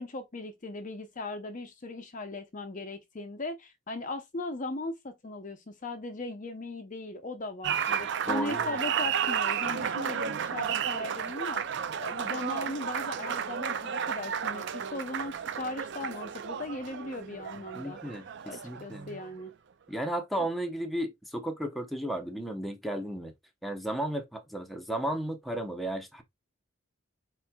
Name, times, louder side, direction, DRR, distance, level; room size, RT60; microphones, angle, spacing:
voice 1, 0.0-11.6 12.0-18.1 18.4-19.5 20.4-20.5, left 2 dB, 40° left, 0.6 m, -38 dB
Applause, 7.6-19.4, right 8 dB, 55° right, 0.4 m, -33 dB
voice 2, 8.3-8.8 17.8-19.1 19.9-23.3 23.6-26.2, right 1 dB, ahead, 0.8 m, -34 dB
4.5 x 4.3 x 2.3 m
head